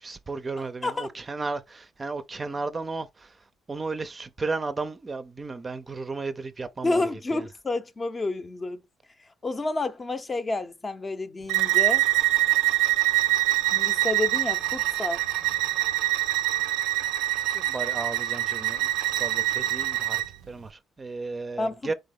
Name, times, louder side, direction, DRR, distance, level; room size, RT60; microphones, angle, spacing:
voice 1, 0.0-3.3 3.7-7.0 7.3-7.5 17.5-20.2 20.5-21.9, right 3 dB, 30° right, 0.5 m, -34 dB
voice 2, 6.8-8.8 9.4-12.0 13.7-15.2 21.6-21.9, left 2 dB, 30° left, 0.6 m, -29 dB
Bowed string instrument, 11.5-20.3, right 17 dB, 90° right, 0.4 m, -24 dB
4.0 x 3.5 x 3.6 m
cardioid pair, 85°, 0 cm